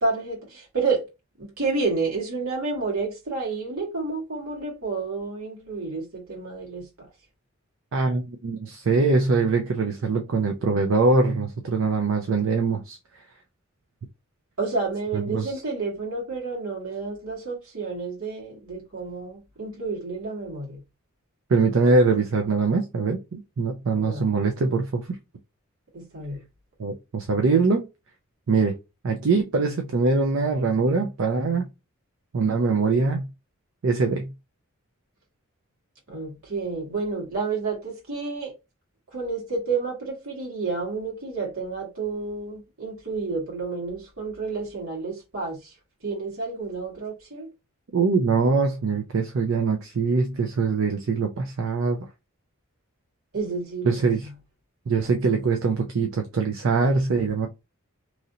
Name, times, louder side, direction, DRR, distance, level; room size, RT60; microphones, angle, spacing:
voice 1, 0.0-1.0 1.4-6.8 14.6-20.8 23.9-24.3 25.9-26.4 36.1-38.5 39.1-45.6 46.0-47.5 53.3-54.3, right 4 dB, 85° right, 1.8 m, -30 dB
voice 2, 7.9-13.0 15.1-15.5 21.5-25.0 26.8-27.9 28.5-28.8 29.0-31.7 32.3-33.2 33.8-34.3 47.9-52.1 53.8-54.3 54.9-57.5, right 4 dB, 65° right, 0.5 m, -23 dB
3.1 x 2.6 x 2.7 m
head